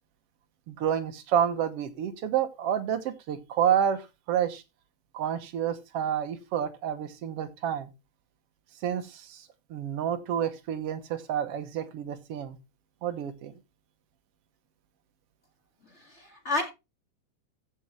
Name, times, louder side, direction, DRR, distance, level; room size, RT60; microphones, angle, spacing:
voice 1, 0.7-4.6 5.1-7.9 8.8-12.6 13.0-13.5, right 9 dB, 60° right, 1.8 m, -29 dB
voice 2, 15.9-16.6, left 2 dB, 25° left, 1.9 m, -31 dB
15.0 x 6.9 x 3.2 m
omnidirectional pair, 3.5 m